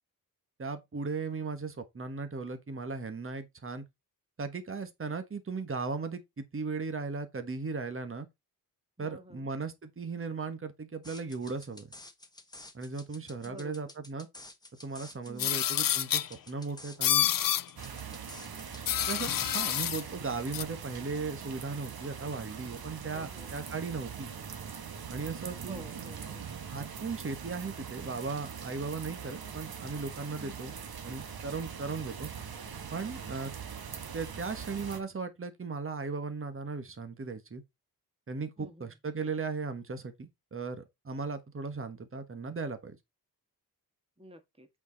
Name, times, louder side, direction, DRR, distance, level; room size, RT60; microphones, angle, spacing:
voice 1, 0.6-3.8 4.4-8.3 9.0-11.9 12.7-14.3 14.8-17.3 18.7-24.3 25.1-25.8 26.5-32.3 32.9-33.5 34.1-37.6 38.3-43.0, right 4 dB, 35° right, 1.4 m, -37 dB
voice 2, 9.0-9.5 13.4-13.9 15.3-15.7 23.1-23.6 25.7-26.4 30.4-30.6 38.6-39.0 44.2-44.7, right 1 dB, 15° right, 1.6 m, -50 dB
sound 1, 11.0-19.8, left 2 dB, 10° left, 1.2 m, -51 dB
sound 2, 15.4-16.3 17.0-17.6 18.9-20.0 20.5-20.6, left 11 dB, 65° left, 0.5 m, -28 dB
sound 3, 17.8-35.0, right 7 dB, 75° right, 1.3 m, -42 dB
8.2 x 4.9 x 4.0 m
wide cardioid pair, 125°, 37 cm